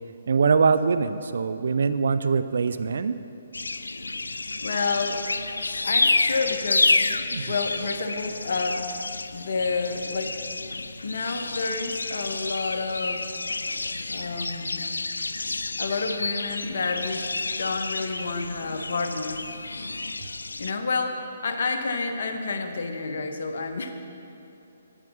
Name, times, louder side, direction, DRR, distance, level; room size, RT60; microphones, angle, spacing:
voice 1, 0.3-3.2 7.3-7.5, right 5 dB, 65° right, 12 dB, 0.4 m, -23 dB
sound 1, 3.5-20.7, left 3 dB, 85° left, 0.4 m, -29 dB
voice 2, 4.6-5.2 5.8-6.9 7.5-8.9 9.3-10.3 11.0-13.3 14.1-14.9 15.8-17.3 17.6-19.4 20.6-23.9, left 4 dB, 65° left, 5 dB, 1.1 m, -29 dB
9.1 x 8.6 x 7.0 m, 2.8 s
figure-of-eight pair, 140°, 0 cm